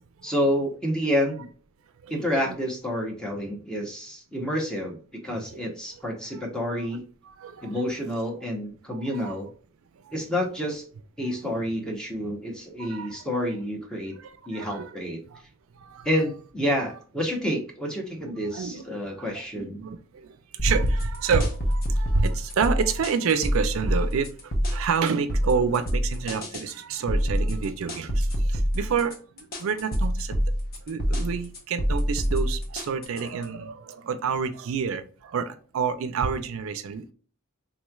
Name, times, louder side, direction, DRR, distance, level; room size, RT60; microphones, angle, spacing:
voice 1, 0.2-1.5 2.1-5.0 5.2-7.0 7.6-9.5 10.1-10.9 11.2-14.2 14.5-15.2 16.0-19.8, equal, 5° left, 0 dB, 0.8 m, -29 dB
voice 2, 2.0-2.6 7.2-7.7 8.9-9.3 11.4-11.9 12.8-13.2 14.2-15.0 15.3-15.4 15.8-16.1 18.5-19.3 19.5-20.4 20.6-29.2 29.6-30.4 30.9-37.1, right 5 dB, 70° right, 10 dB, 0.4 m, -29 dB
sound 1, 20.6-33.4, equal, 45° left, 0.9 m, -26 dB
3.7 x 3.1 x 2.3 m, 0.42 s
head